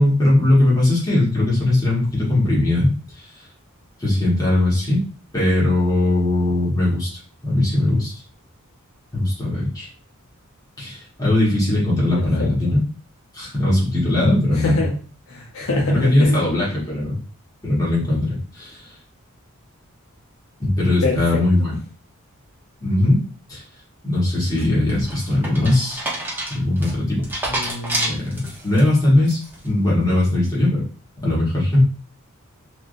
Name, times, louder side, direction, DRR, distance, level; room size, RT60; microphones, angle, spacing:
voice 1, 0.0-3.2 4.0-5.0 5.3-7.1 7.4-8.1 9.1-9.9 10.8-12.8 13.3-14.8 15.9-17.2 17.6-18.9 20.6-21.7 22.8-23.2 23.5-23.6 24.0-26.1 26.5-27.2 28.1-29.4 29.6-30.8 31.2-31.8, left 1 dB, 15° left, -6 dB, 1.3 m, -19 dB
voice 2, 14.6-15.0 15.3-16.4 21.0-21.4 27.5-28.2, left 1 dB, 65° left, -1 dB, 0.7 m, -24 dB
sound 1, 24.6-28.8 29.2-29.7, right 1 dB, 10° right, 0.7 m, -28 dB
3.3 x 2.5 x 2.5 m, 0.39 s
head